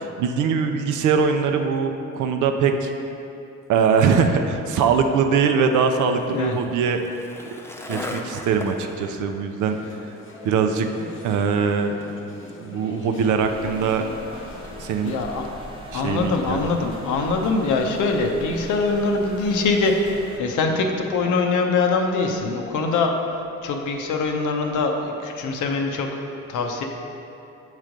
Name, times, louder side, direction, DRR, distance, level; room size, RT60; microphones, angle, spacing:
voice 1, 0.0-2.9 3.7-7.0 7.9-9.8 10.4-10.9 11.2-11.9 12.6-14.0 14.8-15.1 15.9-16.8, right 6 dB, 80° right, 6 dB, 0.5 m, -22 dB
Skateboard, 4.8-15.3, left 1 dB, 10° left, 0.5 m, -41 dB
sound 1, 9.6-14.9, left 2 dB, 40° left, 0.8 m, -40 dB
sound 2, 13.4-20.4, equal, 15° right, 0.9 m, -40 dB
voice 2, 15.0-15.4 15.9-23.1 23.6-26.1 26.5-26.9, left 3 dB, 80° left, 3 dB, 0.7 m, -23 dB
7.5 x 3.2 x 5.1 m, 2.8 s
cardioid pair, 90°, 30 cm